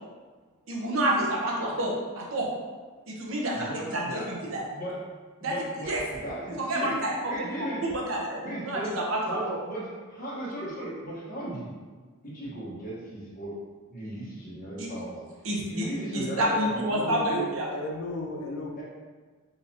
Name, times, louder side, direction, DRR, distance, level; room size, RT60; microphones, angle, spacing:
voice 1, 0.7-2.5 3.1-4.6 5.4-5.5 5.8-6.0 6.6-9.6 14.8-14.9 15.4-15.9 16.1-17.7, right 1 dB, 65° right, -3 dB, 0.8 m, -29 dB
voice 2, 3.5-4.3 4.7-5.0 5.4-6.9 7.3-7.8 8.4-9.0 9.3-11.7 12.2-13.6 13.9-15.2 15.7-17.1 18.8-18.9, right 1 dB, 40° left, -6 dB, 1.1 m, -36 dB
voice 3, 16.7-18.8, left 2 dB, 80° left, 1 dB, 0.5 m, -35 dB
3.9 x 2.9 x 2.7 m, 1.4 s
head